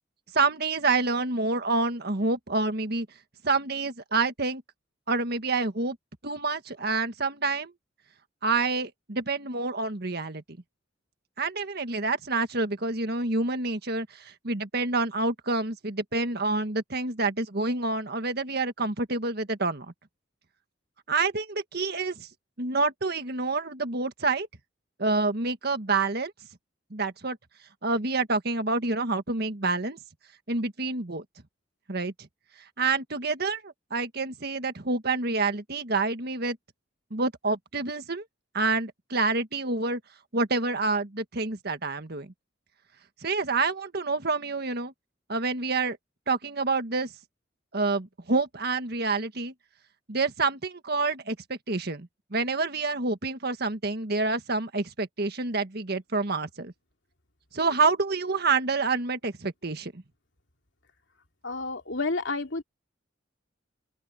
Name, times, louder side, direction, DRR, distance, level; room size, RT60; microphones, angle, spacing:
voice 1, 0.3-3.1 3.4-4.6 5.1-6.0 6.2-7.7 8.4-10.4 11.4-19.9 21.1-22.3 22.6-24.5 25.0-26.3 26.9-27.4 27.8-30.0 30.5-31.2 31.9-32.3 32.8-36.6 37.1-38.2 38.5-40.0 40.3-42.3 43.2-44.9 45.3-46.0 46.3-47.1 47.7-49.5 50.1-56.7 57.5-60.0, right 3 dB, 55° right, 1.7 m, -28 dB
voice 2, 61.4-62.6, left 3 dB, 70° left, 3.0 m, -30 dB
open air
head